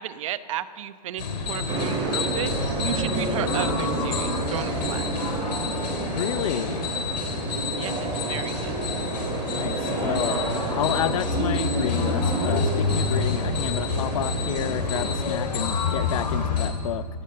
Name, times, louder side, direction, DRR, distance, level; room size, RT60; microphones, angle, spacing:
voice 1, 0.0-5.2 7.8-8.7, right 12 dB, 50° right, 13 dB, 0.9 m, -34 dB
sound 1, 1.2-16.7, left 4 dB, 90° left, 3.9 m, -28 dB
sound 2, 1.7-15.2, right 3 dB, 20° right, 3.4 m, -30 dB
voice 2, 6.1-6.9 9.5-10.4 10.8-17.1, left 12 dB, 55° left, 17 dB, 0.6 m, -30 dB
23.5 x 16.5 x 6.8 m, 2.1 s
hypercardioid pair, 155°, 21 cm